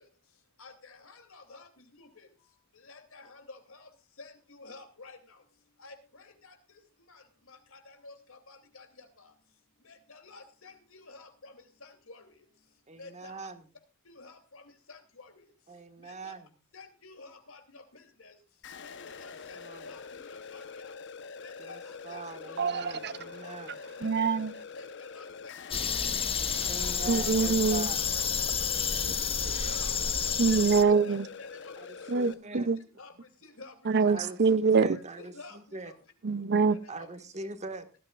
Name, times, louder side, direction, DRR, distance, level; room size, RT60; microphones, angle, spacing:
voice 1, 0.6-1.7 2.0-2.3 2.9-3.9 4.2-5.2 5.8-5.9 6.4-6.5 7.1-7.2 7.5-9.1 10.1-11.5 11.8-12.3 13.0-13.3 14.2-14.6 14.9-15.3 16.1-16.3 16.7-17.8 18.2-18.3 18.8-18.9 19.2-20.9 21.4-21.8 22.1-22.6 23.4-23.5 24.1-24.2 24.7-26.0 26.4-26.9 27.2-27.3 27.8-28.2 28.6-28.7 29.4-29.9 30.2-30.6 31.0-31.7 32.0-32.1 32.5-32.6 33.0-33.1 33.4-33.7 34.0-34.3 34.8-35.6 37.0-37.1, left 3 dB, 80° left, 3.0 m, -50 dB
voice 2, 12.9-13.7 15.7-16.5 19.6-19.9 21.6-23.8 26.6-28.0 31.8-32.7 34.1-35.9 36.9-37.9, right 3 dB, 35° right, 1.7 m, -42 dB
sound 1, 18.6-32.3, left 5 dB, 60° left, 1.0 m, -45 dB
voice 3, 22.6-23.1 24.0-24.5 27.1-27.9 30.4-31.3 32.1-32.8 33.9-35.0 36.2-36.8, right 5 dB, 55° right, 0.7 m, -25 dB
sound 2, 25.7-30.8, left 6 dB, 25° left, 0.9 m, -30 dB
18.5 x 13.0 x 2.5 m
head